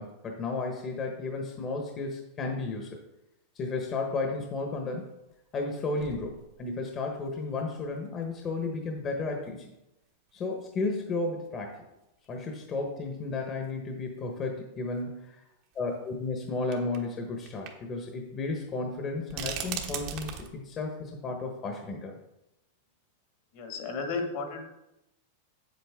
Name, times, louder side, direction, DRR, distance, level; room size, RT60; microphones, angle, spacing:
voice 1, 0.0-3.0 3.5-5.1 5.5-9.7 10.3-11.8 12.3-15.4 15.7-22.1, left 3 dB, 30° left, 2 dB, 1.1 m, -33 dB
sound 1, 4.7-4.8 5.6-5.7 6.0-6.9 7.6-7.7 9.4-9.5 10.8-10.9 11.1-11.2 12.2-12.3 12.7-12.8 14.2-14.3 15.7-15.8 16.7-17.1 17.5-17.7 18.0-18.1 19.3-20.5, right 8 dB, 50° right, 1.2 m, -38 dB
voice 2, 23.5-24.7, left 4 dB, 60° left, 4 dB, 1.7 m, -33 dB
7.8 x 7.7 x 3.6 m, 0.90 s
supercardioid pair, 130°, 0 cm